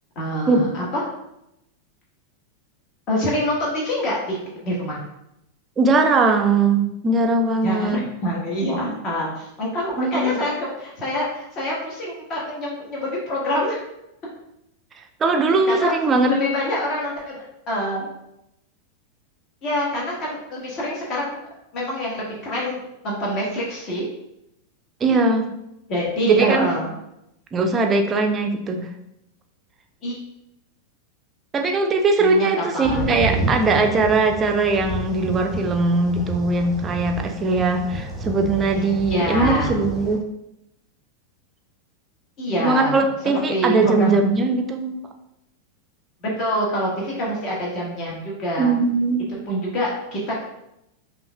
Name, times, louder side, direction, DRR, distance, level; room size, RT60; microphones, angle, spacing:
voice 1, 0.1-1.0 3.1-4.4 4.6-5.0 7.6-13.8 15.7-15.9 16.3-17.4 17.7-18.1 19.6-21.4 21.7-22.8 23.0-24.1 25.9-26.9 30.0-30.2 32.2-33.1 39.1-39.8 42.4-43.1 43.5-44.1 46.2-48.7 49.5-50.4, equal, 35° left, -4 dB, 1.3 m, -26 dB
voice 2, 5.8-8.0 10.0-10.4 15.2-16.3 25.0-25.5 26.2-26.7 27.5-28.9 31.5-40.2 42.6-44.9 48.6-49.3, right 3 dB, 20° right, 4 dB, 0.5 m, -20 dB
sound 1, 32.8-40.2, right 2 dB, 5° left, 1.0 m, -30 dB
5.3 x 2.5 x 2.2 m, 0.84 s
figure-of-eight pair, 90°, 0 cm